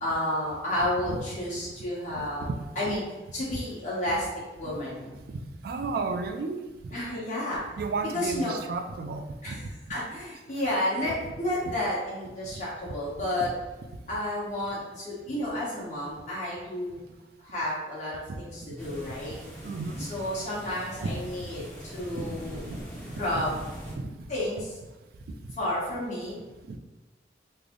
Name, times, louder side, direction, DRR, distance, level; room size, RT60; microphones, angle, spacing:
voice 1, 0.0-2.5 2.7-3.0 3.3-4.3 4.6-5.2 6.9-7.6 8.1-8.5 9.4-9.6 9.9-13.5 14.1-17.0 17.4-19.4 20.0-22.7 23.2-23.5 24.3-24.7 25.6-26.4, left 1 dB, 40° left, -7 dB, 1.2 m, -31 dB
voice 2, 2.2-2.6 4.6-4.8 5.3-6.6 7.8-9.6 11.6-11.7 12.5-12.6 18.3-18.4 19.6-20.1 21.0-21.2 22.7-22.8 23.3-23.4 24.0-24.3 26.7-26.8, right 3 dB, 55° right, 6 dB, 0.3 m, -33 dB
sound 1, 18.8-23.9, equal, 5° left, 0.8 m, -42 dB
3.2 x 2.0 x 3.6 m, 1.1 s
head